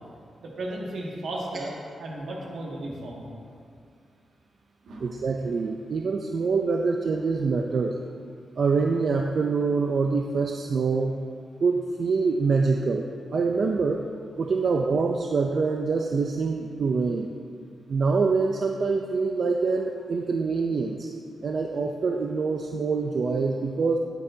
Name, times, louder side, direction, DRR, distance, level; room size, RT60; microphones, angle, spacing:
voice 1, 0.4-3.3 4.8-5.0, right 1 dB, 80° right, -3 dB, 1.8 m, -35 dB
voice 2, 5.0-8.0 8.6-11.2 11.6-13.1 13.3-14.1 14.4-17.3 17.9-21.1 21.4-24.0, right 4 dB, 60° right, 2 dB, 0.4 m, -25 dB
10.5 x 8.7 x 2.7 m, 2.3 s
cardioid pair, 100°, 0 cm